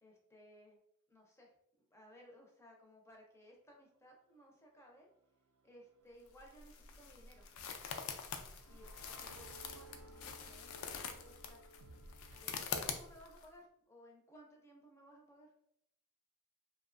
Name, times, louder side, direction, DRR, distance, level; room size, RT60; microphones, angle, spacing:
voice 1, 0.0-0.8 1.1-1.5 1.8-5.1 5.6-7.4 8.7-11.8 12.3-12.5 12.8-15.5, equal, 15° left, 0 dB, 0.4 m, -60 dB
sound 1, 5.0-12.4, right 2 dB, 85° right, 0.4 m, -59 dB
sound 2, 6.3-13.5, left 6 dB, 75° left, 0.3 m, -45 dB
2.6 x 2.1 x 2.4 m, 0.72 s
head